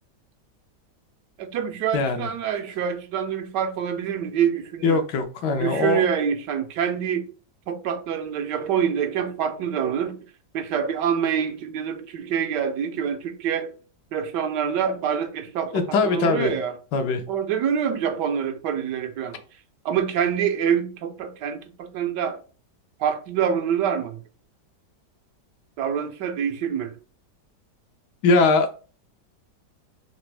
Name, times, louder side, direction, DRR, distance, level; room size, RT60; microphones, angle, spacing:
voice 1, 1.4-5.0 5.6-7.3 7.7-10.2 10.5-13.7 14.1-16.8 17.3-19.4 19.8-22.4 23.0-24.2 25.8-26.9, right 8 dB, 85° right, 1.3 m, -26 dB
voice 2, 1.9-2.3 4.8-6.0 15.7-16.5 16.9-17.2 28.2-28.7, left 3 dB, 80° left, 1.3 m, -21 dB
4.0 x 3.3 x 3.3 m
omnidirectional pair, 1.8 m